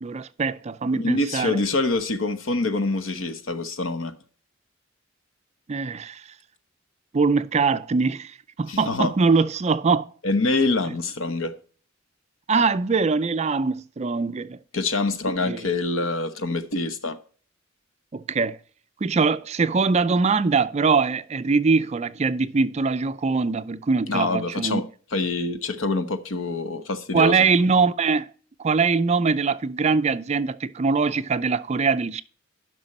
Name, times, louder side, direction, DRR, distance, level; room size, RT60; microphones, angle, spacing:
voice 1, 0.0-1.6 5.7-6.2 7.1-10.1 10.9-11.0 12.5-14.6 15.5-15.6 18.1-18.6 19.0-24.8 27.1-28.3 28.6-32.2, right 4 dB, 35° right, 0.4 m, -22 dB
voice 2, 0.9-4.1 8.7-9.1 10.2-11.6 14.7-17.2 24.1-24.9 25.1-27.4, left 3 dB, 75° left, 0.9 m, -25 dB
10.5 x 6.0 x 4.2 m
head